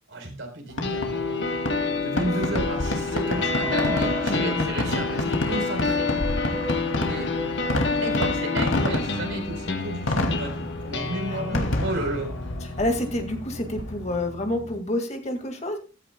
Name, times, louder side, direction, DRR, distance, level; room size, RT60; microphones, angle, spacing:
voice 1, 0.1-1.5 2.0-6.1 7.0-7.3 8.0-12.3, right 1 dB, 65° right, 4 dB, 4.2 m, -32 dB
Fireworks, 0.7-14.3, left 1 dB, 75° left, 2.5 m, -30 dB
sound 1, 0.8-14.8, left 3 dB, 55° left, 1.4 m, -29 dB
sound 2, 3.2-8.6 9.1-9.2 9.4-9.5 10.2-10.3 10.7-11.0, left 1 dB, 10° right, 0.9 m, -38 dB
voice 2, 4.3-4.8 11.3-11.7 12.6-15.8, left 1 dB, 35° left, 4 dB, 2.0 m, -29 dB
15.0 x 13.5 x 2.3 m, 0.34 s
head